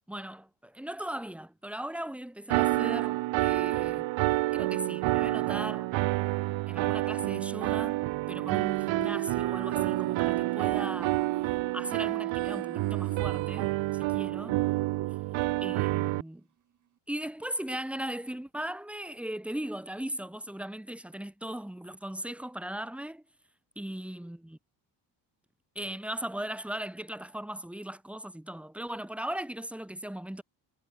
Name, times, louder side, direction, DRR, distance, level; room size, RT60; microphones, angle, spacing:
voice 1, 0.1-4.1 4.5-5.9 6.7-11.2 11.7-14.6 15.6-16.4 17.1-23.2 23.8-24.6 25.8-30.4, right 1 dB, 5° right, 2.4 m, -38 dB
sound 1, 2.5-16.2, right 20 dB, 75° right, 2.1 m, -29 dB
sound 2, 8.8-15.8, right 10 dB, 40° right, 1.4 m, -42 dB
cardioid pair, 115°, 45 cm